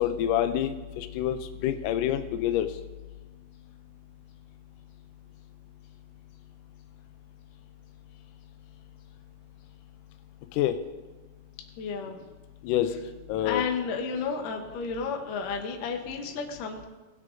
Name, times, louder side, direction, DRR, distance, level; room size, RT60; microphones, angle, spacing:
voice 1, 0.0-2.7 10.6-10.8 12.6-12.9 13.3-13.6, left 11 dB, 85° left, 8 dB, 1.9 m, -27 dB
voice 2, 11.8-12.2 13.4-16.9, left 5 dB, 70° left, 3 dB, 2.3 m, -32 dB
19.0 x 6.5 x 3.8 m, 1.2 s
omnidirectional pair, 4.3 m